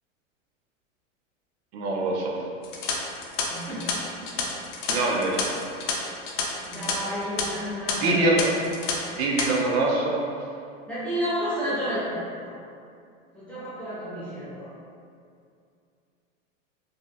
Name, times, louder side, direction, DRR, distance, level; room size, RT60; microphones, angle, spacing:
voice 1, 1.7-2.4 4.9-5.5 8.0-8.6 9.2-10.3, right 2 dB, 55° right, -1 dB, 0.5 m, -24 dB
sound 1, 2.6-6.9 7.2-7.4 7.9-8.0 8.4-8.9 9.2-9.5, left 5 dB, 70° left, 0.6 m, -30 dB
voice 2, 3.5-3.9 4.2-4.4 6.6-8.3 10.9-12.6 13.3-14.7, equal, 5° left, -13 dB, 0.4 m, -31 dB
2.6 x 2.0 x 2.5 m, 2.4 s
hypercardioid pair, 125°, 39 cm